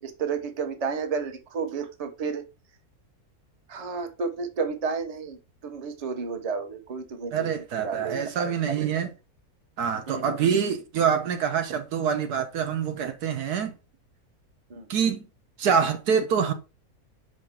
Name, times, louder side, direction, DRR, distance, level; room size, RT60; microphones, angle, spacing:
voice 1, 0.0-2.4 3.7-9.0 10.1-10.4 14.7-14.9, right 5 dB, 35° right, 0.7 m, -32 dB
voice 2, 7.3-9.1 9.8-13.7 14.9-15.3 15.6-16.5, right 7 dB, 85° right, 1.5 m, -25 dB
5.7 x 5.1 x 3.5 m
omnidirectional pair, 1.6 m